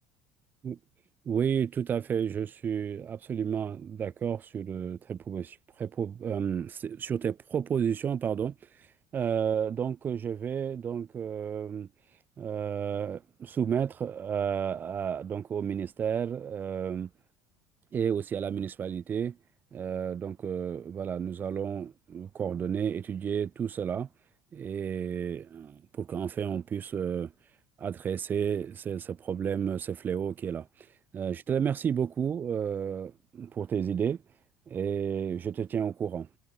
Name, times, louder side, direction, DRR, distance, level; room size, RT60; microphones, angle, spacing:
voice 1, 1.2-8.5 9.1-11.9 12.4-17.1 17.9-19.4 19.7-24.1 24.5-27.3 27.8-30.7 31.1-34.2 34.7-36.3, right 8 dB, 40° right, 1.4 m, -31 dB
supercardioid pair, 90°, 5 cm